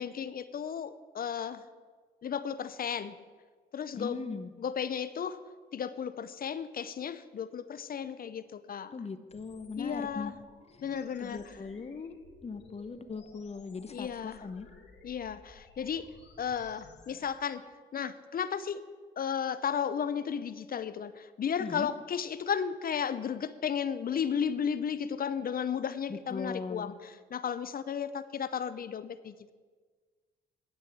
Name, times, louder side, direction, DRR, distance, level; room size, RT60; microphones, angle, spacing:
voice 1, 0.0-1.6 2.2-3.1 3.7-4.2 4.6-5.4 5.7-9.0 9.8-10.3 10.8-11.5 13.9-14.4 15.0-16.1 16.4-18.8 19.2-29.5, left 7 dB, 50° left, 14 dB, 0.6 m, -34 dB
voice 2, 3.9-4.5 8.9-10.3 11.2-12.1 12.4-14.7 21.6-21.9 26.1-26.9, left 4 dB, 35° left, 11 dB, 0.9 m, -39 dB
sound 1, 9.3-17.3, left 4 dB, 65° left, 2.3 m, -56 dB
9.8 x 6.3 x 8.3 m, 1.5 s
supercardioid pair, 65°, 19 cm